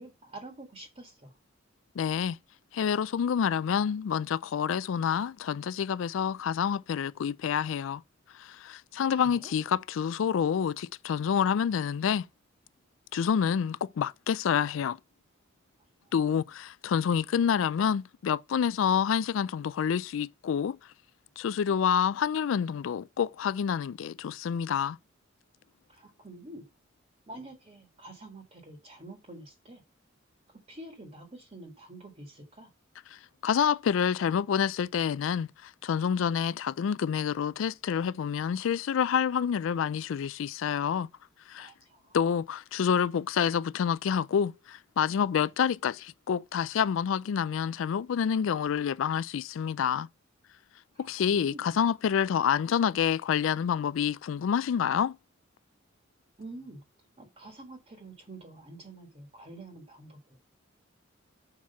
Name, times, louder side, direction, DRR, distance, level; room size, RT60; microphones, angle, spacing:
voice 1, 0.0-1.4 9.0-9.5 25.9-26.6 27.3-29.8 30.7-32.7 41.6-42.2 50.9-51.7 56.4-56.8 57.2-60.4, right 2 dB, 30° right, 1.5 m, -47 dB
voice 2, 2.0-2.4 2.7-8.0 8.3-12.3 13.1-15.0 16.1-20.8 21.4-25.0 33.4-41.1 41.5-41.7 42.1-50.1 51.0-55.2, left 7 dB, 70° left, 0.3 m, -28 dB
5.9 x 4.7 x 5.4 m
head